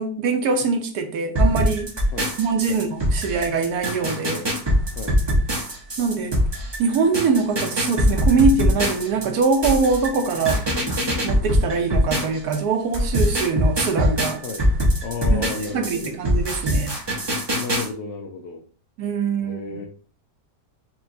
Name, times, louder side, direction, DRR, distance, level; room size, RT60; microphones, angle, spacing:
voice 1, 0.0-1.9 2.4-4.5 6.0-6.4 6.8-10.7 11.2-14.4 15.3-15.5 15.7-16.9 19.0-19.8, right 4 dB, 70° right, 1.1 m, -23 dB
sound 1, 1.3-12.6 12.9-17.9, equal, 35° right, 0.4 m, -22 dB
voice 2, 15.0-16.2 17.5-18.6 19.4-19.9, left 4 dB, 80° left, 1.3 m, -32 dB
4.4 x 2.9 x 2.6 m
omnidirectional pair, 1.9 m